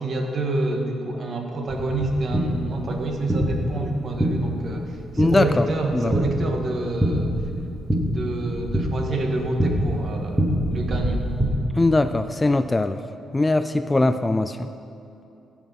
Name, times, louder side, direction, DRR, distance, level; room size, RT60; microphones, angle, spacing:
voice 1, 0.0-7.4 8.0-11.2, right 2 dB, 50° right, 3 dB, 1.4 m, -28 dB
sound 1, 1.7-11.5, equal, 10° right, 1.7 m, -26 dB
voice 2, 5.2-5.7 5.9-6.1 11.8-13.0 13.3-14.7, left 2 dB, 20° left, 11 dB, 0.3 m, -21 dB
14.5 x 6.1 x 5.5 m, 2.8 s
cardioid pair, 90°, 0 cm